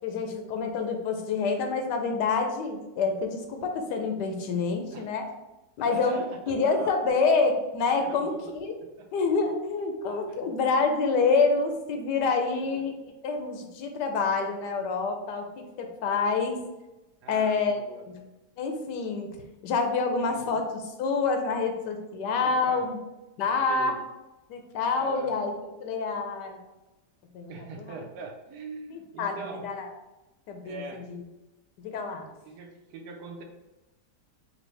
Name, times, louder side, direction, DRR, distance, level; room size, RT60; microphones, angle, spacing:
voice 1, 0.0-5.3 5.8-8.8 9.1-16.6 17.3-17.8 18.1-18.3 18.6-19.4 19.6-22.9 23.4-24.0 24.5-25.5 25.8-26.6 27.3-28.0 28.9-29.9 30.5-31.2 31.8-32.3, left 4 dB, 90° left, 5 dB, 1.2 m, -27 dB
voice 2, 5.8-6.9 7.2-7.3 8.0-8.5 9.0-9.1 10.3-10.4 12.7-12.8 17.2-18.0 20.2-20.6 22.4-22.9 23.5-24.0 25.0-25.3 27.5-29.7 30.6-31.1 32.5-33.4, right 4 dB, 75° right, 3 dB, 1.2 m, -42 dB
4.3 x 2.7 x 3.2 m, 1.0 s
omnidirectional pair, 1.8 m